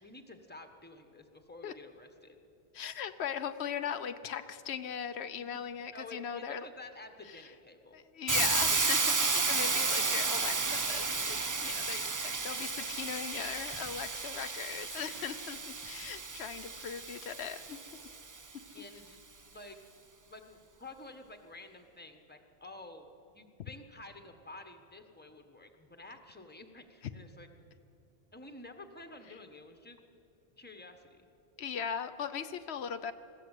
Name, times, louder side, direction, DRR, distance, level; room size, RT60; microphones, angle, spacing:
voice 1, 0.0-2.4 5.9-8.0 18.7-19.2 19.5-19.8 20.3-23.0 23.3-27.8 28.3-30.0 30.6-31.2, left 2 dB, 10° left, 6 dB, 1.3 m, -50 dB
voice 2, 2.7-6.7 7.2-7.5 7.9-17.8 18.5-18.6 29.3-29.4 31.6-33.1, left 8 dB, 80° left, 10 dB, 1.0 m, -39 dB
Hiss, 8.3-18.2, right 4 dB, 30° right, 0.4 m, -32 dB
21.0 x 15.0 x 8.3 m, 2.7 s
omnidirectional pair, 1.1 m